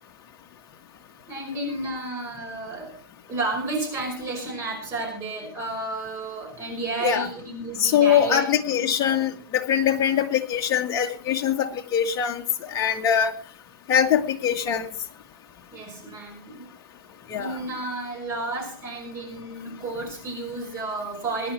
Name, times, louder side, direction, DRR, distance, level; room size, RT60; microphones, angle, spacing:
voice 1, 1.3-3.0 3.3-8.4 8.8-9.2 15.7-16.7 17.4-21.5, right 2 dB, 25° right, 2 dB, 5.7 m, -32 dB
voice 2, 7.8-13.3 13.9-14.9 17.3-17.6, left 9 dB, 25° left, 3 dB, 1.7 m, -23 dB
22.5 x 10.5 x 4.5 m, 0.42 s
hypercardioid pair, 140°, 12 cm